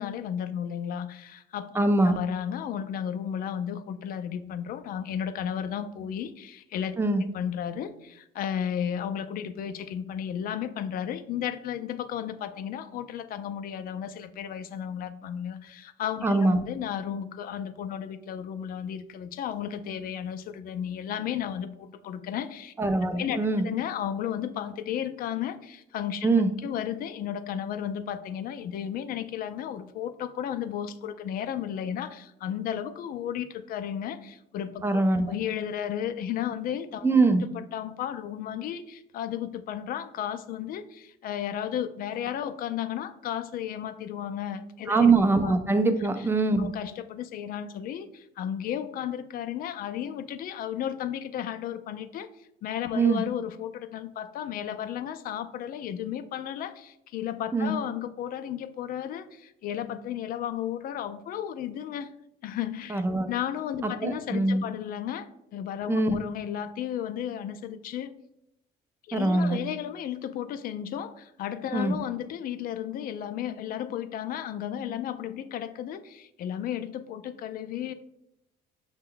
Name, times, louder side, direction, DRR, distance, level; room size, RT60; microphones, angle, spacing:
voice 1, 0.0-1.7 2.0-7.0 7.2-22.7 23.1-23.4 23.6-26.3 26.6-37.1 37.5-45.1 45.4-45.8 46.6-62.1 62.4-63.0 63.3-68.1 69.1-77.9, left 9 dB, 60° left, 11 dB, 0.4 m, -34 dB
voice 2, 1.7-2.2 7.0-7.2 16.2-16.6 22.8-23.7 26.2-26.5 34.8-35.3 37.0-37.4 44.9-46.7 52.9-53.2 57.5-57.7 62.9-63.3 63.8-64.6 65.9-66.1 69.1-69.6 71.7-72.0, right 3 dB, 15° right, 8 dB, 0.4 m, -23 dB
5.8 x 2.1 x 3.7 m, 0.82 s
cardioid pair, 110°, 17 cm